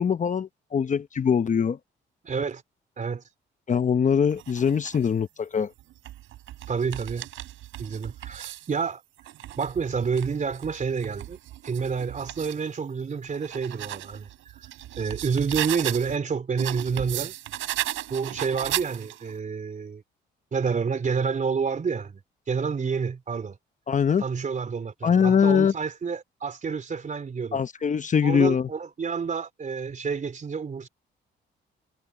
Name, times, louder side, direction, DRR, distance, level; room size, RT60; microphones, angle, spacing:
voice 1, 0.0-1.8 3.7-5.7 23.9-24.2 25.0-25.7 27.5-28.7, left 7 dB, 40° left, 1.0 m, -22 dB
voice 2, 2.2-2.6 3.0-3.2 6.7-7.3 7.8-9.0 9.6-11.4 11.6-14.3 15.0-17.3 18.1-20.0 20.5-22.2 22.5-23.6 24.2-27.6 28.2-30.9, right 5 dB, 40° right, 3.6 m, -29 dB
sound 1, 4.3-5.1 5.8-8.7 9.2-12.6 13.1-16.2 16.6-19.3, right 14 dB, 85° right, 4.9 m, -36 dB
cardioid pair, 90°, 20 cm